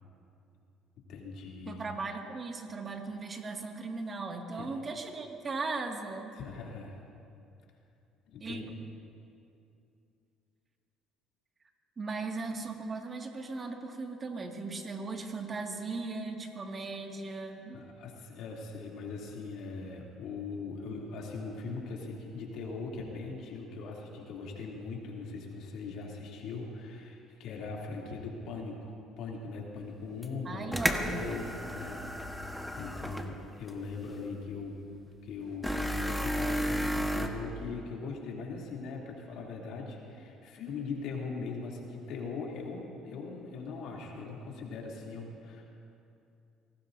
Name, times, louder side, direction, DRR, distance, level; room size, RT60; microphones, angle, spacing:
voice 1, 1.1-1.9 4.5-4.7 6.4-7.0 8.3-8.7 17.7-32.0 32.4-34.8 35.2-45.7, left 4 dB, 70° left, -2 dB, 3.0 m, -40 dB
voice 2, 1.7-6.4 8.4-8.6 12.0-17.9 30.4-31.3, right 3 dB, 35° right, 2 dB, 2.1 m, -38 dB
sound 1, 30.2-30.3 30.7-33.3 33.7-33.8 35.6-37.3, equal, ahead, 1.3 m, -32 dB
24.0 x 18.0 x 2.7 m, 2.6 s
supercardioid pair, 80°, 0 cm